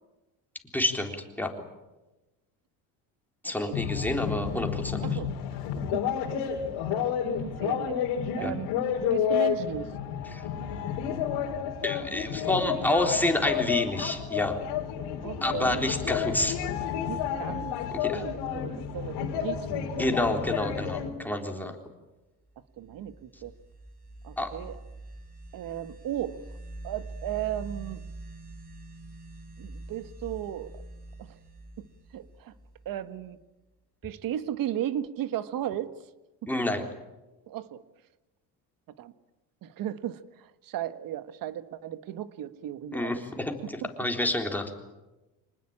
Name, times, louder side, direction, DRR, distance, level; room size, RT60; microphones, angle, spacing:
voice 1, 0.7-1.5 3.4-5.0 8.4-8.5 10.3-10.4 11.8-14.6 15.4-16.6 18.0-18.2 20.0-21.8 24.4-24.5 36.5-36.8 42.9-44.7, left 1 dB, 5° left, 3 dB, 3.7 m, -28 dB
sound 1, 3.7-21.1, left 8 dB, 80° left, 3.6 m, -31 dB
voice 2, 5.0-5.3 5.8-6.1 6.9-8.0 8.4-8.7 9.1-9.9 15.2-15.8 17.0-20.2 21.5-21.8 22.8-23.5 24.2-24.8 25.5-26.4 26.8-28.0 29.6-30.8 31.2-31.4 31.8-31.9 32.1-32.5 32.8-33.4 34.0-35.9 36.4-36.5 37.5-37.8 39.0-39.1 39.6-43.2 43.6-43.7, right 11 dB, 55° right, 12 dB, 1.6 m, -35 dB
sound 2, 22.7-33.2, right 2 dB, 20° right, 5.6 m, -45 dB
26.0 x 20.0 x 8.9 m, 1.1 s
cardioid pair, 115°, 39 cm